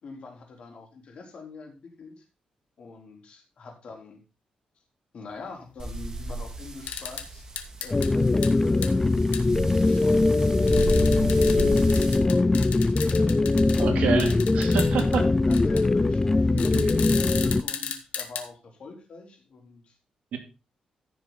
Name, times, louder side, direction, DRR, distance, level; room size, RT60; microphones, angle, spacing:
voice 1, 0.0-2.3 2.8-4.2 5.1-7.5 7.8-10.6 11.0-13.8 15.0-20.0, left 4 dB, 55° left, 2 dB, 3.7 m, -45 dB
sound 1, 5.8-12.2, right 2 dB, 25° right, 2.1 m, -34 dB
sound 2, 6.9-7.2 7.6-8.1 8.4-8.5 8.8-8.9 9.3-9.4 10.7-13.8 14.2-15.2 15.5-15.8 16.6-18.4, left 8 dB, 85° left, 1.6 m, -35 dB
sound 3, 7.9-17.6, left 3 dB, 20° left, 0.4 m, -21 dB
voice 2, 13.8-15.2 16.7-17.0 20.3-20.4, right 6 dB, 80° right, 5 dB, 2.8 m, -28 dB
15.0 x 6.6 x 4.0 m, 0.31 s
cardioid pair, 120°, 2 cm